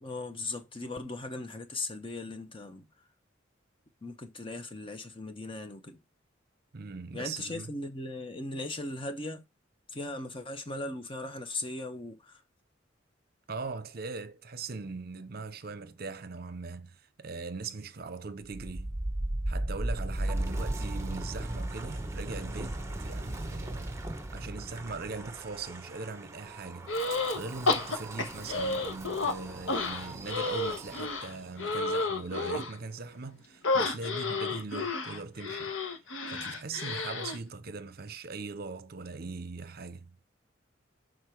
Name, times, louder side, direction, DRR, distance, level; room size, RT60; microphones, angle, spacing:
voice 1, 0.0-2.9 4.0-6.0 7.1-9.4 9.9-12.4, left 2 dB, 25° left, 1.0 m, -38 dB
voice 2, 6.7-7.7 13.5-19.0 19.5-35.7 36.3-40.2, right 4 dB, 50° right, 0.7 m, -40 dB
Wind, 18.4-31.4, right 1 dB, 15° right, 0.9 m, -37 dB
sound 1, 26.9-27.4 27.7-29.3 29.7-32.7 33.6-37.4, left 3 dB, 90° left, 1.3 m, -31 dB
6.6 x 4.0 x 4.5 m
head